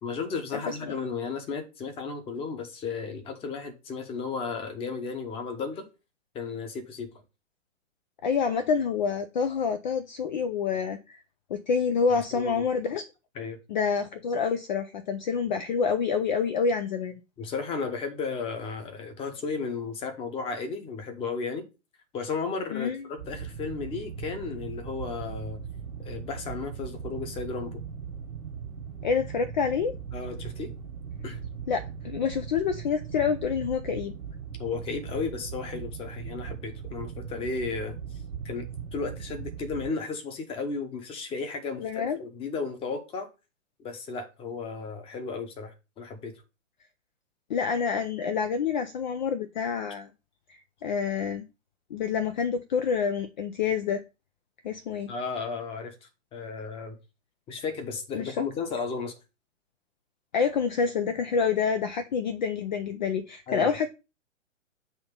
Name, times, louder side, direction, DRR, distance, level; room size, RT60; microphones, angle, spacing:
voice 1, 0.0-5.9 6.3-7.1 12.1-12.7 13.4-13.6 17.4-21.6 22.1-25.6 26.0-27.8 30.1-30.7 31.2-31.4 34.6-37.9 38.4-38.7 38.9-43.3 43.8-46.3 55.1-57.0 57.5-59.1 63.5-63.7, left 4 dB, 15° left, 1.0 m, -34 dB
voice 2, 0.5-1.0 8.2-11.2 11.5-13.0 13.7-17.2 22.7-23.1 29.0-29.9 31.7-34.1 41.8-42.2 47.5-50.1 50.5-51.4 51.9-54.0 54.6-55.1 58.1-58.3 60.3-63.9, left 6 dB, 35° left, 0.6 m, -27 dB
sound 1, 23.2-39.9, right 7 dB, 75° right, 1.6 m, -39 dB
7.8 x 2.9 x 5.3 m
figure-of-eight pair, 125°, 38 cm